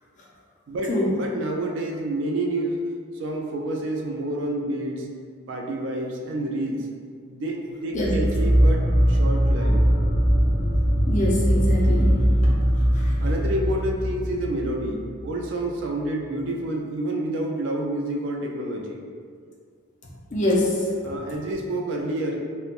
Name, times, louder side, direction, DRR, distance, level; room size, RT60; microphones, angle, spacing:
voice 1, 0.7-2.8 3.1-5.1 5.5-6.9 7.3-9.9 13.2-19.1 21.0-22.4, right 1 dB, 55° right, 1 dB, 0.3 m, -29 dB
sound 1, 7.9-15.3, equal, 30° right, 0.8 m, -21 dB
voice 2, 11.1-12.4 12.9-13.1 20.3-20.9, left 1 dB, 35° left, -4 dB, 0.4 m, -24 dB
3.2 x 2.1 x 2.4 m, 2.1 s
head